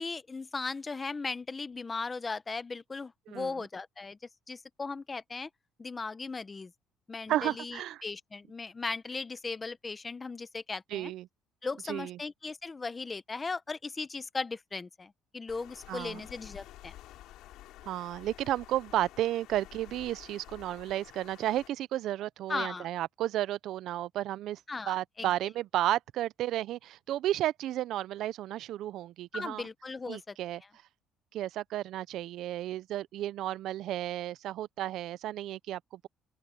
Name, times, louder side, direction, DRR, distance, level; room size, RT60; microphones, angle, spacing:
voice 1, 0.0-4.2 4.5-5.5 5.8-6.7 7.1-11.1 11.6-16.9 22.5-22.9 24.7-25.3 29.3-30.4, left 4 dB, 15° left, 0.6 m, -37 dB
voice 2, 7.3-8.0 10.9-11.3 11.9-12.2 15.9-16.2 17.9-24.6 24.9-29.7 30.1-30.6 31.3-36.1, right 13 dB, 60° right, 0.3 m, -33 dB
Water, 15.5-21.7, left 14 dB, 75° left, 3.3 m, -51 dB
open air
cardioid pair, 170°, 0 cm